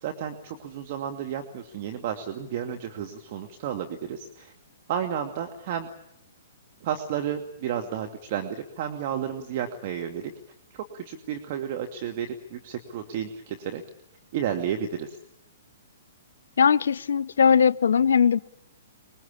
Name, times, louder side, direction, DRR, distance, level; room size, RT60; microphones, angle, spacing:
voice 1, 0.0-4.5 4.9-5.9 6.8-10.3 10.9-13.8 14.3-15.2, right 9 dB, 45° right, 5 dB, 2.4 m, -32 dB
voice 2, 16.6-18.4, left 7 dB, 70° left, 20 dB, 0.9 m, -20 dB
25.0 x 22.0 x 8.6 m, 0.81 s
figure-of-eight pair, 120°, 0 cm